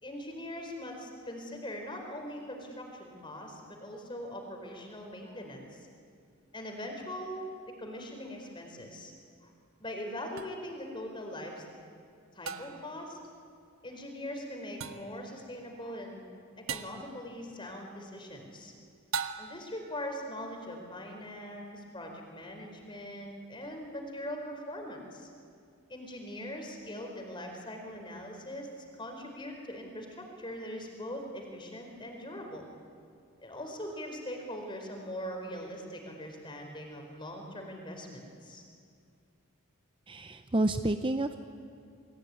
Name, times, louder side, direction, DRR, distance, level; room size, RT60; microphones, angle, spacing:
voice 1, 0.0-5.9 6.5-7.5 7.8-9.1 9.4-9.5 9.8-11.7 12.3-13.2 13.8-16.3 16.7-18.7 19.4-25.3 25.9-28.7 29.0-32.6 33.4-38.6, equal, 20° left, 2 dB, 4.4 m, -41 dB
sound 1, 10.4-10.5 12.5-13.0 14.8-15.2 16.7-17.1 19.1-19.8, right 6 dB, 70° right, 1.2 m, -37 dB
voice 2, 40.1-41.4, right 1 dB, 25° right, 9 dB, 0.7 m, -29 dB
28.5 x 22.0 x 9.6 m, 2.4 s
head